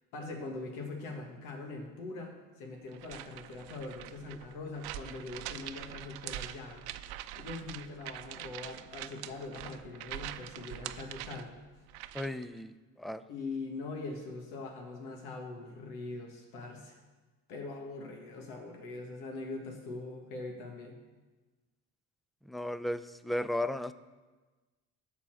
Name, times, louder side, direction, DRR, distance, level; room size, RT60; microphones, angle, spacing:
voice 1, 0.1-6.9 7.4-11.5 13.3-17.0 17.5-21.0, left 3 dB, 80° left, 2 dB, 1.7 m, -42 dB
sound 1, 2.9-12.4, right 13 dB, 65° right, 0.7 m, -44 dB
voice 2, 12.1-13.2 22.5-23.9, left 1 dB, ahead, 14 dB, 0.4 m, -35 dB
11.5 x 4.2 x 7.7 m, 1.3 s
hypercardioid pair, 70°, 41 cm